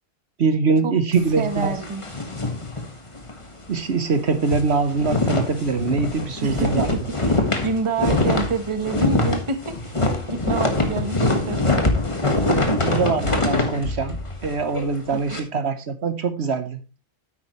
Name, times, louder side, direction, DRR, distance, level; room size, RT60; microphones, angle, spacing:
voice 1, 0.4-1.8 3.7-6.9 12.5-14.2 14.4-16.8, right 4 dB, 60° right, 10 dB, 1.2 m, -23 dB
sound 1, 1.2-3.4 3.8-3.9 4.2-15.4, left 2 dB, 25° left, 1.6 m, -24 dB
voice 2, 1.4-2.0 6.4-12.0 15.1-15.8, right 4 dB, 25° right, 9 dB, 1.0 m, -28 dB
9.8 x 8.6 x 3.1 m, 0.33 s
omnidirectional pair, 1.3 m